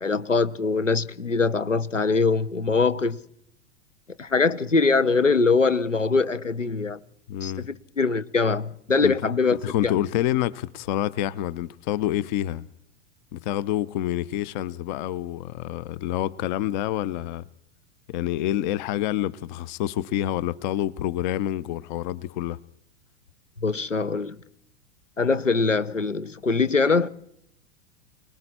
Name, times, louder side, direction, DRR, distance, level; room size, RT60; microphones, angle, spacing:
voice 1, 0.0-3.2 4.2-7.0 7.4-9.9 23.6-24.4 25.2-27.1, left 4 dB, 85° left, 1.0 m, -23 dB
voice 2, 7.3-7.7 9.0-9.1 9.4-12.7 13.3-17.5 18.1-22.6, left 12 dB, 40° left, 0.8 m, -27 dB
29.0 x 20.0 x 4.4 m
figure-of-eight pair, 95°, 36 cm